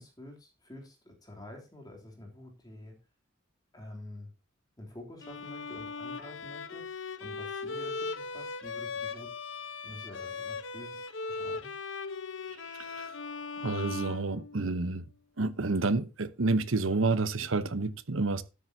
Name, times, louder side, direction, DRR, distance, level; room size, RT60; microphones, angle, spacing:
voice 1, 0.0-3.0 3.7-4.3 4.8-9.3 9.8-11.7, left 1 dB, 20° left, 3.2 m, -48 dB
Bowed string instrument, 5.2-14.9, left 4 dB, 70° left, 1.0 m, -39 dB
voice 2, 12.7-13.1 13.6-15.0 15.4-18.4, right 3 dB, 80° right, 1.0 m, -29 dB
13.0 x 9.4 x 2.8 m
head